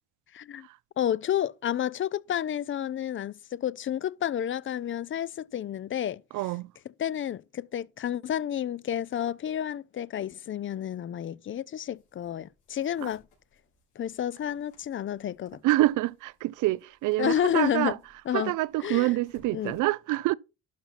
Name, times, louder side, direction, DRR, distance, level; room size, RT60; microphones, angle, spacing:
voice 1, 0.3-0.7 1.0-6.2 7.0-13.2 14.0-15.6 17.2-18.0 18.3-18.5 18.8-19.1 19.5-19.8, left 10 dB, 45° left, 0.4 m, -30 dB
voice 2, 6.3-6.7 13.0-13.1 15.6-18.0 18.3-20.3, right 18 dB, 90° right, 0.5 m, -26 dB
sound 1, 11.8-19.8, left 4 dB, 85° left, 5.3 m, -63 dB
11.5 x 5.7 x 4.1 m
cardioid pair, 90°, 30 cm